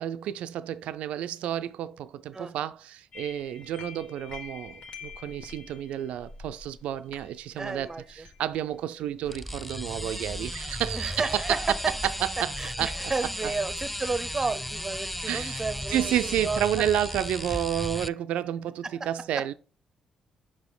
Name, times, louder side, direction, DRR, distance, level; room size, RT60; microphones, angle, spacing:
voice 1, 0.0-11.6 12.0-12.5 12.8-13.1 13.4-13.5 15.3-19.5, right 11 dB, 80° right, 0.4 m, -31 dB
sound 1, 3.1-9.7, left 5 dB, 60° left, 1.2 m, -47 dB
voice 2, 7.5-8.3 10.9-11.9 12.6-16.6 18.8-19.1 19.3-19.4, right 3 dB, 25° right, 0.7 m, -32 dB
sound 2, 9.2-18.1, equal, 5° left, 0.3 m, -35 dB
5.9 x 4.9 x 3.9 m
supercardioid pair, 60°, 2 cm